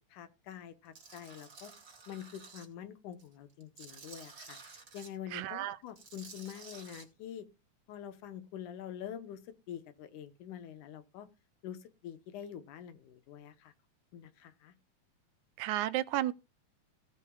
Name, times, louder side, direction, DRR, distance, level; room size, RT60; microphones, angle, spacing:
voice 1, 0.0-1.7 2.1-7.5 7.9-9.4 9.7-11.3 11.6-13.7 14.1-14.7, left 9 dB, 85° left, 2.6 m, -46 dB
Tools, 0.9-2.7 3.1-5.1 5.9-7.0, right 4 dB, 40° right, 2.7 m, -52 dB
voice 2, 5.3-5.8 15.6-16.3, right 14 dB, 80° right, 2.1 m, -32 dB
17.0 x 9.7 x 2.4 m
omnidirectional pair, 3.5 m